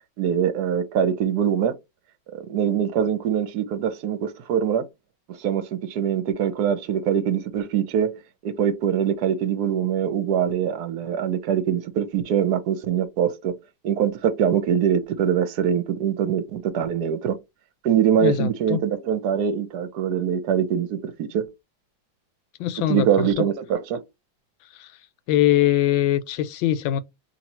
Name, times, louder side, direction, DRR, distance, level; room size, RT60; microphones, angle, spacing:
voice 1, 0.2-1.8 2.4-4.9 5.4-8.1 8.4-13.5 13.8-17.4 17.8-21.4 22.9-24.0, right 8 dB, 65° right, 1.1 m, -23 dB
voice 2, 18.2-18.8 22.6-23.4 24.7-24.9 25.3-27.0, left 12 dB, 85° left, 1.3 m, -22 dB
2.9 x 2.7 x 4.2 m
omnidirectional pair, 2.1 m